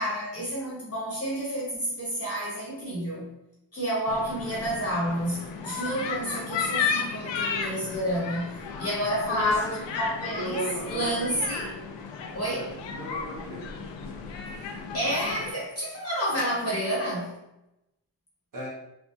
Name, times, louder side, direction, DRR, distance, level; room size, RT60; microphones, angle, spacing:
voice 1, 0.0-3.3 3.7-11.7 12.3-12.7 14.6-14.7 14.9-17.4, equal, 30° left, -6 dB, 1.0 m, -30 dB
sound 1, 4.1-15.5, left 5 dB, 75° left, 0.5 m, -34 dB
voice 2, 9.3-9.8 10.3-11.3 12.9-13.7 18.5-18.7, right 1 dB, 45° right, -4 dB, 1.2 m, -35 dB
3.4 x 2.2 x 2.7 m, 0.88 s
wide cardioid pair, 105°, 44 cm